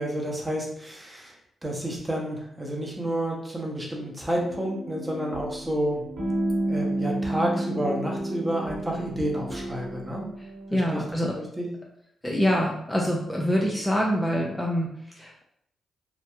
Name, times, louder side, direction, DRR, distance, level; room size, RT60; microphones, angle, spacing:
voice 1, 0.0-1.3 1.6-6.0 6.7-10.3 10.7-11.0 11.4-11.7, right 1 dB, 20° right, -1 dB, 0.8 m, -30 dB
sound 1, 4.4-11.1, right 1 dB, 65° right, 0.6 m, -31 dB
voice 2, 10.7-11.4 12.2-14.9 15.2-15.4, equal, 10° left, -1 dB, 0.4 m, -25 dB
2.7 x 2.0 x 2.3 m, 0.71 s
supercardioid pair, 50°, 0 cm